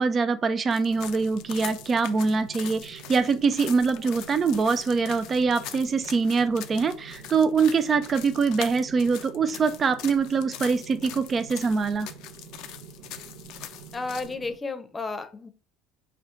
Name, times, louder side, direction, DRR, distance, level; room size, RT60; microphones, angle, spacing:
voice 1, 0.0-12.1, right 4 dB, 35° right, 0.4 m, -24 dB
sound 1, 0.7-14.3, left 11 dB, 65° left, 0.4 m, -42 dB
sound 2, 0.9-14.6, right 6 dB, 85° right, 0.7 m, -47 dB
voice 2, 13.9-15.5, left 3 dB, 25° left, 0.7 m, -32 dB
4.3 x 2.3 x 3.7 m
hypercardioid pair, 70°, 0 cm